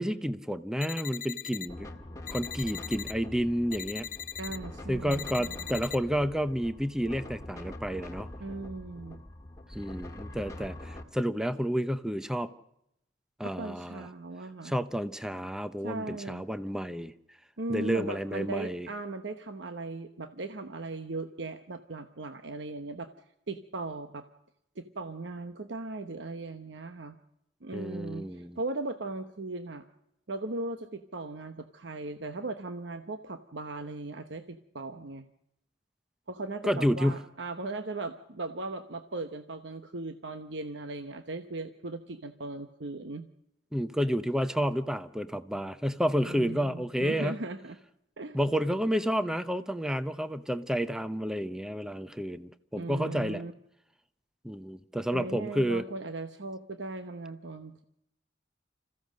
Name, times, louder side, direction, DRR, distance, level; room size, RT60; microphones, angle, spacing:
voice 1, 0.0-1.9 2.3-4.1 4.9-8.3 9.7-12.5 13.4-14.1 14.6-17.1 17.7-18.9 27.7-28.6 36.6-37.2 43.7-47.4 48.3-53.4 54.4-55.8, equal, 5° right, 12 dB, 0.7 m, -30 dB
sound 1, 0.8-1.7 2.3-3.1 3.7-4.6 5.1-6.0, left 9 dB, 45° left, 0.7 m, -40 dB
sound 2, 1.7-11.0, left 1 dB, 15° left, 1.7 m, -44 dB
voice 2, 4.4-5.6 8.4-9.2 13.4-14.8 15.8-16.4 17.6-23.1 23.5-24.2 24.8-27.2 27.6-29.8 30.3-35.3 36.3-43.3 46.2-47.8 48.2-48.4 52.7-53.5 55.1-57.8, right 2 dB, 70° right, 8 dB, 1.0 m, -38 dB
26.5 x 15.5 x 6.5 m, 0.79 s
head